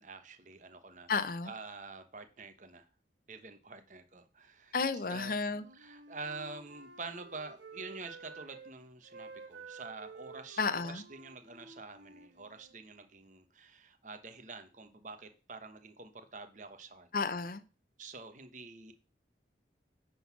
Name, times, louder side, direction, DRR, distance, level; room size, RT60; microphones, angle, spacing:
voice 1, 0.0-1.1 1.4-2.9 3.3-4.7 5.1-5.3 5.7-17.1 18.0-18.9, right 3 dB, 45° right, 1.0 m, -47 dB
voice 2, 1.1-1.5 4.7-5.6 10.6-11.0 17.1-17.6, left 4 dB, 50° left, 0.7 m, -32 dB
Wind instrument woodwind instrument, 5.4-8.7 9.0-12.8, right 4 dB, 90° right, 1.3 m, -52 dB
9.7 x 3.9 x 6.0 m
head